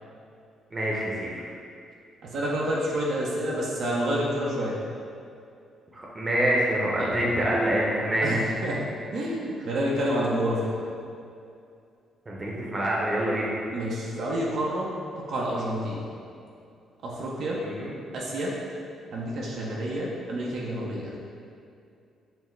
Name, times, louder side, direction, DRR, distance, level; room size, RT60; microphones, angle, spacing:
voice 1, 0.7-1.5 5.9-8.4 12.3-13.5 17.6-17.9, right 1 dB, 25° right, -4 dB, 0.8 m, -26 dB
voice 2, 2.2-4.8 7.0-7.1 8.2-8.9 9.1-10.8 13.7-14.9 15.2-16.0 17.0-17.6 18.1-18.5 19.1-21.1, right 1 dB, 65° right, -4 dB, 0.6 m, -28 dB
5.7 x 2.0 x 3.2 m, 2.5 s
cardioid pair, 90°, 0 cm